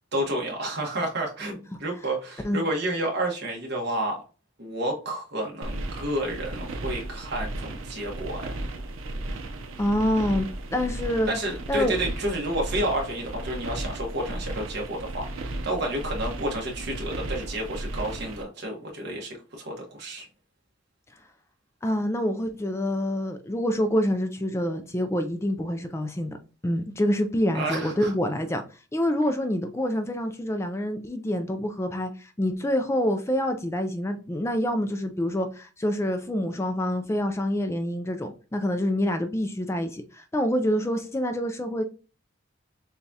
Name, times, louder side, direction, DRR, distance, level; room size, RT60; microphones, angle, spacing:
voice 1, 0.1-4.2 4.6-8.6 11.3-20.3 27.5-28.1, right 1 dB, 55° right, 1.2 m, -30 dB
sound 1, 5.6-18.4, right 1 dB, 80° right, 0.7 m, -35 dB
voice 2, 9.8-11.3 11.7-11.9 21.8-26.4 26.6-41.8, equal, 15° left, 0.3 m, -26 dB
6.9 x 2.3 x 2.7 m
head